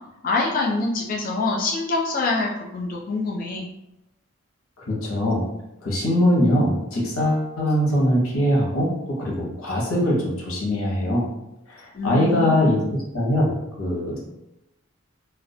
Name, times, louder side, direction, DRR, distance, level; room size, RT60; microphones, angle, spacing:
voice 1, 0.2-3.7 11.9-12.9, left 3 dB, 40° left, -1 dB, 0.4 m, -25 dB
voice 2, 4.9-5.5 5.8-11.3 11.7-12.8 13.1-14.2, left 1 dB, 85° left, -3 dB, 0.7 m, -22 dB
2.2 x 2.1 x 2.6 m, 0.90 s
head